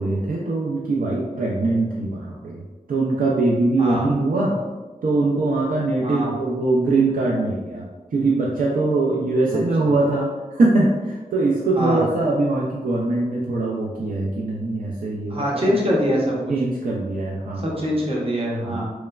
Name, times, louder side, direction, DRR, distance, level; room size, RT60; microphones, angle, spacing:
voice 1, 0.0-2.6 2.9-4.6 5.0-7.9 8.1-15.8 16.5-18.0 18.6-18.8, right 2 dB, 70° right, -4 dB, 0.4 m, -22 dB
voice 2, 3.8-4.1 6.0-6.3 9.5-9.6 11.8-12.0 15.3-16.5 17.6-18.9, equal, 40° right, -3 dB, 0.7 m, -23 dB
3.0 x 2.1 x 2.3 m, 1.2 s
wide cardioid pair, 70°, 15 cm